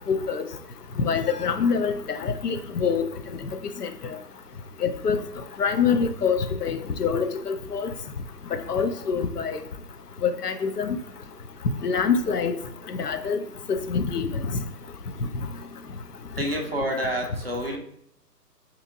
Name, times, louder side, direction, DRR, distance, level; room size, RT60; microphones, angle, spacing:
voice 1, 0.1-0.4 1.0-3.0 3.8-3.9 4.8-5.2 5.6-7.9 8.7-9.6 10.2-11.0 11.8-12.5 13.0-13.4 13.7-14.6, left 6 dB, 70° left, 7 dB, 0.6 m, -25 dB
voice 2, 16.4-17.8, equal, 40° right, 1 dB, 0.5 m, -28 dB
4.7 x 2.8 x 2.6 m, 0.74 s
figure-of-eight pair, 140°, 49 cm